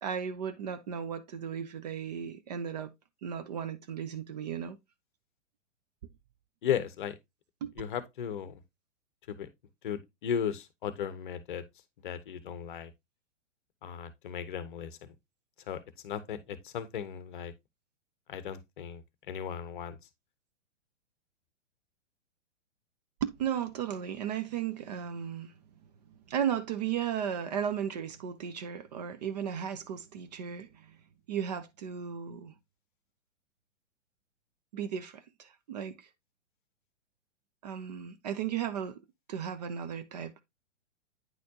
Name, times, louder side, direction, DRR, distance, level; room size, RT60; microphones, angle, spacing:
voice 1, 0.0-2.9 3.2-4.8 7.6-7.7 23.2-25.5 26.1-31.0 31.3-32.5 34.7-36.1 37.6-39.0 39.3-40.4, right 8 dB, 35° right, 0.5 m, -35 dB
voice 2, 6.6-7.2 7.8-8.6 9.3-9.5 9.8-11.6 12.0-12.9 13.8-15.1 15.7-17.5 18.3-20.0, left 8 dB, 45° left, 0.8 m, -36 dB
9.2 x 4.2 x 2.7 m
figure-of-eight pair, 110°, 36 cm